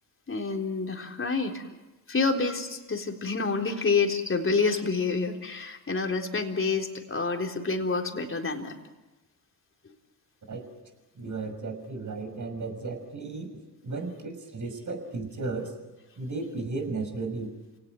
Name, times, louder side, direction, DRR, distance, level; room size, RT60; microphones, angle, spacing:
voice 1, 0.3-1.7 2.1-8.7, left 4 dB, 25° left, 3 dB, 3.9 m, -28 dB
voice 2, 11.2-13.5 13.8-15.7 16.2-17.5, right 3 dB, 40° right, 7 dB, 6.2 m, -34 dB
29.0 x 18.0 x 9.2 m, 1.1 s
hypercardioid pair, 55°, 47 cm